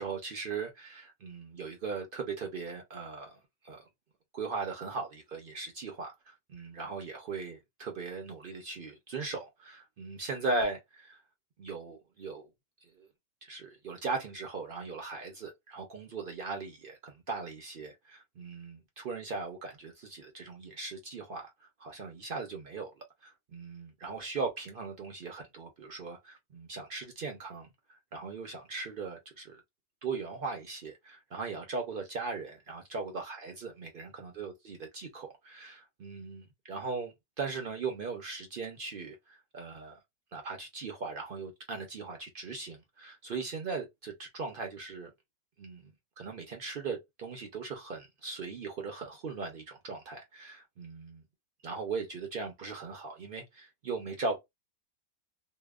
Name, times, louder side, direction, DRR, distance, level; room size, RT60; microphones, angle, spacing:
voice 1, 0.0-3.8 4.3-11.2 11.6-12.5 12.8-13.1 13.4-29.6 30.0-40.0 40.3-45.1 45.6-51.2 51.6-54.4, right 4 dB, 60° right, 0.5 m, -39 dB
2.8 x 2.0 x 2.3 m
omnidirectional pair, 1.6 m